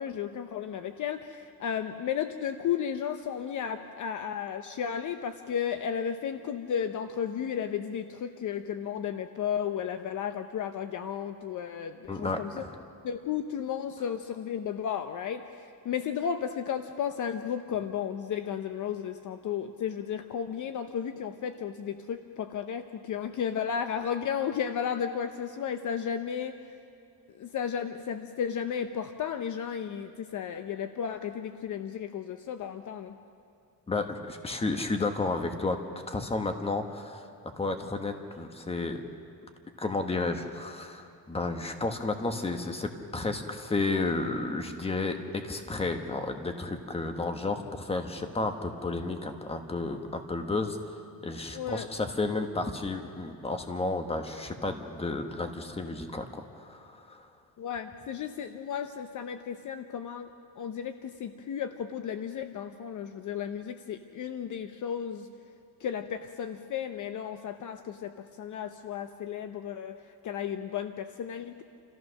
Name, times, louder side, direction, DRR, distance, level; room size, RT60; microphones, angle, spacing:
voice 1, 0.0-12.6 13.0-26.6 27.3-33.2 51.5-51.9 57.6-60.3 60.6-65.3 65.8-71.6, left 8 dB, 50° left, 9 dB, 0.8 m, -34 dB
voice 2, 12.1-12.7 33.9-35.8 36.1-37.3 37.6-39.0 39.8-51.0 51.2-57.3, left 3 dB, 15° left, 6 dB, 1.3 m, -32 dB
28.5 x 14.5 x 6.4 m, 2.4 s
cardioid pair, 150°, 40 cm